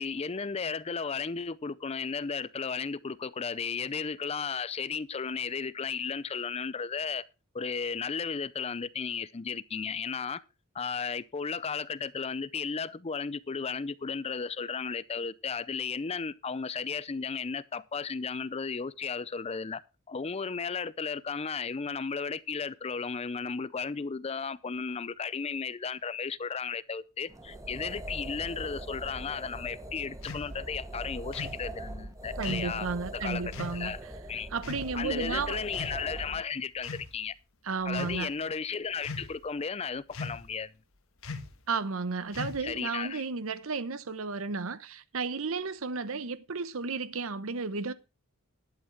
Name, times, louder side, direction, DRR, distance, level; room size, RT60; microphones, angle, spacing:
voice 1, 0.0-7.3 7.5-10.4 10.7-19.8 20.1-32.9 33.1-33.4 33.7-34.0 34.3-34.5 34.9-37.3 37.8-40.7 42.6-43.2, left 5 dB, 30° left, 0.5 m, -34 dB
sound 1, 27.3-36.4, right 1 dB, 15° right, 1.0 m, -41 dB
sound 2, 30.2-30.5 31.3-31.6 32.4-32.7 33.5-33.8 34.6-34.9 35.7-36.3 36.8-37.1 37.8-38.2 39.0-39.4 40.1-40.5 41.2-41.6 42.3-42.8, left 3 dB, 65° left, 1.4 m, -39 dB
voice 2, 32.4-34.1 34.5-35.6 37.6-38.3 41.7-47.9, right 4 dB, 65° right, 0.8 m, -33 dB
11.5 x 8.8 x 4.5 m
head